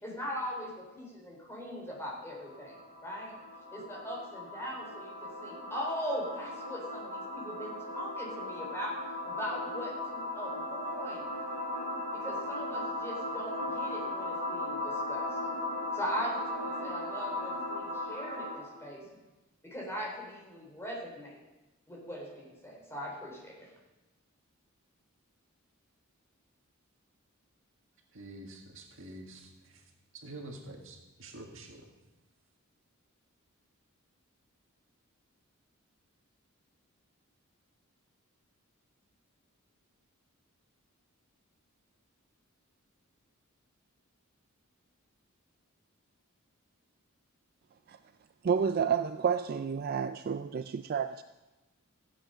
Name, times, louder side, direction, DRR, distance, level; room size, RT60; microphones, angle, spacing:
voice 1, 0.0-3.3 3.7-11.3 12.1-15.3 15.9-19.1 19.6-21.4 21.9-23.6, equal, 10° left, -3 dB, 3.7 m, -40 dB
sound 1, 2.1-18.8, left 1 dB, 60° left, 4.1 m, -37 dB
voice 2, 28.1-29.9 30.1-31.9, right 2 dB, 65° right, 1 dB, 1.9 m, -47 dB
voice 3, 48.4-51.2, right 7 dB, 45° right, 10 dB, 0.3 m, -30 dB
14.5 x 8.6 x 5.6 m, 1.1 s
head